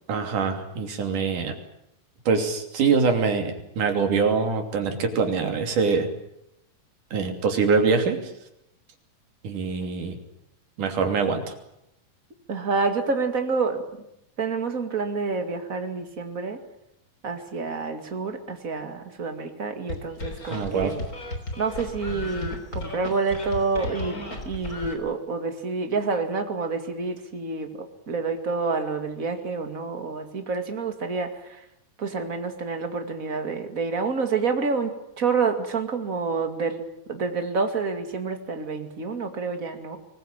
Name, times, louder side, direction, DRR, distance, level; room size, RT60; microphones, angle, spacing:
voice 1, 0.1-1.6 2.3-6.1 7.1-8.2 9.4-10.2 10.8-11.5 20.5-20.9, right 5 dB, 60° right, 5 dB, 4.3 m, -24 dB
voice 2, 12.5-13.8 14.4-16.6 17.2-21.0 21.6-27.7 28.1-31.3 32.0-34.9 35.2-36.8 37.1-40.0, right 4 dB, 25° right, 6 dB, 2.2 m, -28 dB
sound 1, 19.9-24.9, left 1 dB, 25° left, 3.8 m, -34 dB
24.5 x 20.5 x 9.0 m, 0.81 s
omnidirectional pair, 4.1 m